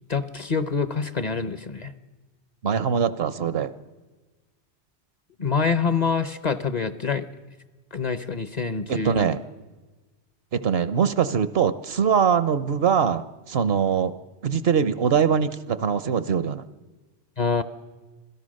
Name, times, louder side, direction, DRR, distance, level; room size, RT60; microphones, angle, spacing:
voice 1, 0.1-1.9 5.4-7.3 7.9-9.3 17.4-17.6, left 5 dB, 40° left, 12 dB, 0.9 m, -26 dB
voice 2, 2.6-3.7 8.9-9.4 10.5-14.1 14.4-16.6, right 7 dB, 65° right, 14 dB, 1.0 m, -22 dB
26.0 x 17.5 x 6.4 m, 1.2 s
omnidirectional pair, 1.1 m